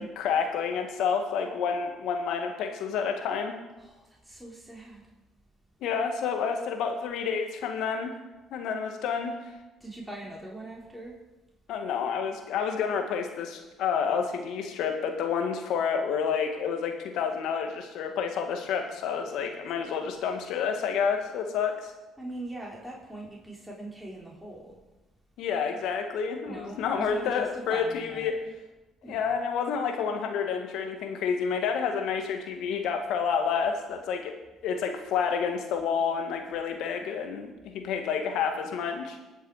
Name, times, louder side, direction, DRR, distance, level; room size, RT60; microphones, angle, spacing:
voice 1, 0.0-3.5 5.8-8.1 8.5-9.4 11.7-21.9 25.4-28.4 29.1-34.4 34.6-39.2, left 6 dB, 70° left, 4 dB, 1.9 m, -29 dB
voice 2, 3.8-5.0 9.8-11.2 22.2-24.8 26.4-28.5 29.0-29.3, right 1 dB, 5° right, -4 dB, 3.6 m, -41 dB
20.0 x 6.6 x 5.0 m, 1.1 s
hypercardioid pair, 60°, 0 cm